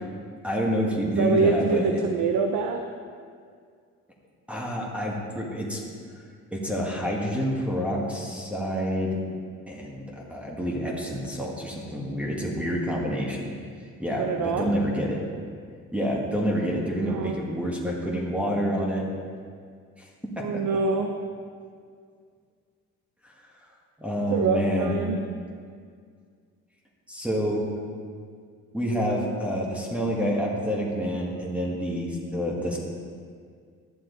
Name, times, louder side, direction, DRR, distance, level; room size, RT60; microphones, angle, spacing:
voice 1, 0.4-2.0 4.5-5.8 6.5-9.2 9.7-13.6 14.0-15.2 15.9-19.1 20.0-20.6 23.2-23.3 24.0-25.0 27.1-27.6 28.7-32.8, equal, 5° right, -3 dB, 1.7 m, -28 dB
voice 2, 1.1-2.8 14.2-14.7 16.9-17.4 20.4-21.1 24.2-25.2, right 4 dB, 85° right, 4 dB, 0.7 m, -25 dB
12.0 x 7.4 x 4.0 m, 2.1 s
cardioid pair, 90°, 30 cm